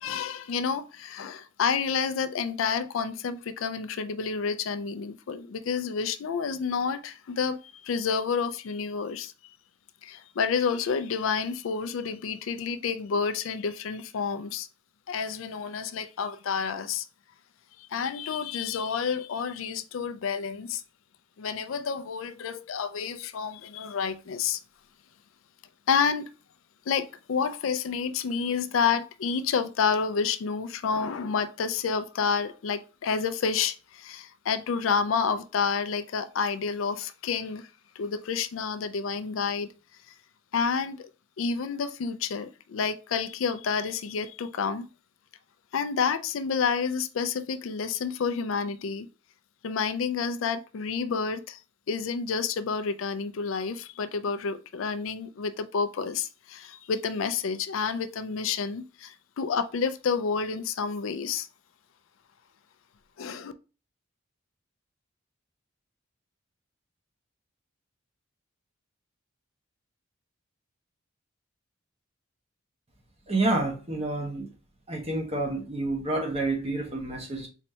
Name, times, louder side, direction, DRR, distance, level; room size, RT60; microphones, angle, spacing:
voice 1, 0.0-7.6 7.8-9.3 10.0-14.7 15.1-17.0 17.9-20.8 21.4-24.6 25.9-26.3 26.9-37.7 38.0-39.7 40.5-41.1 41.4-44.9 45.7-49.1 49.6-51.6 51.9-61.5 63.2-63.5, left 6 dB, 75° left, 0.4 m, -29 dB
voice 2, 73.3-74.5 74.9-77.5, right 2 dB, 30° right, 1.2 m, -29 dB
4.2 x 3.2 x 2.7 m
head